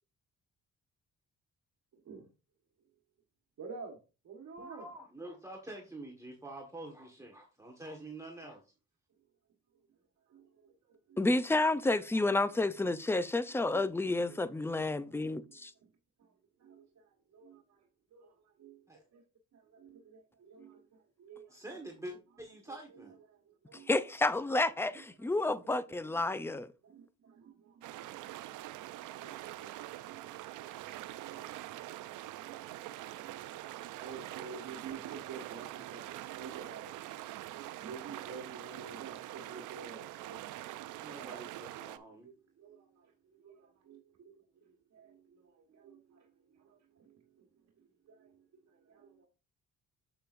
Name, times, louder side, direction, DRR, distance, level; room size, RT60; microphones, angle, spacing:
voice 1, 1.9-2.3 3.6-4.9 10.3-11.3 13.5-13.6 14.2-14.4 14.9-15.1 15.4-15.9 16.2-19.2 19.5-21.9 22.7-23.9 24.9-25.8 26.0-26.3 26.8-41.1 41.9-49.3, right 5 dB, 60° right, 1.5 m, -52 dB
voice 2, 4.6-8.6 18.9-19.0 21.5-23.2 41.0-42.3, right 1 dB, 10° right, 1.5 m, -47 dB
voice 3, 11.2-15.7 23.9-26.7, left 2 dB, 10° left, 0.5 m, -30 dB
sound 1, 27.8-42.0, right 15 dB, 85° right, 0.5 m, -44 dB
7.8 x 6.6 x 2.6 m
cardioid pair, 90°, 30 cm